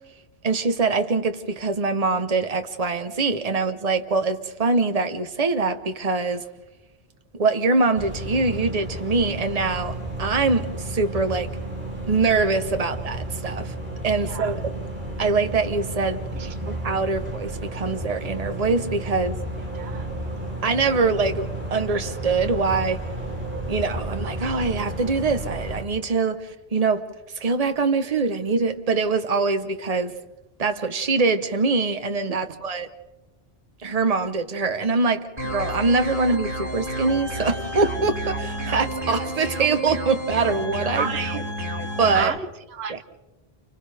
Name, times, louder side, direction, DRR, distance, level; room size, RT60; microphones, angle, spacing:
voice 1, 0.4-6.4 7.3-11.5 12.0-13.7 14.0-14.8 15.2-19.4 20.6-23.0 23.7-27.1 27.4-30.1 30.6-32.9 33.8-41.2 42.0-42.3 42.9-43.0, right 4 dB, 40° right, 1.1 m, -23 dB
sound 1, 8.0-25.8, right 1 dB, 10° right, 3.8 m, -32 dB
voice 2, 19.7-20.2 36.3-36.4 40.9-41.4 42.1-43.0, right 5 dB, 90° right, 1.1 m, -31 dB
sound 2, 35.4-42.2, equal, 55° right, 5.5 m, -30 dB
29.5 x 29.5 x 3.4 m
omnidirectional pair, 1.0 m